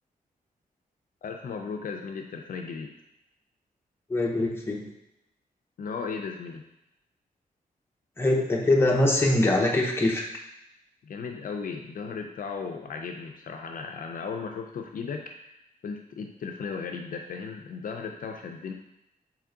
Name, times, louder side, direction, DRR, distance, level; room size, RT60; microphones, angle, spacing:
voice 1, 1.2-2.9 5.8-6.6 11.0-18.7, left 5 dB, 65° left, 3 dB, 0.5 m, -36 dB
voice 2, 4.1-4.9 8.2-10.2, left 1 dB, 15° left, -1 dB, 0.7 m, -23 dB
4.6 x 3.1 x 3.7 m, 0.84 s
wide cardioid pair, 145°, 15 cm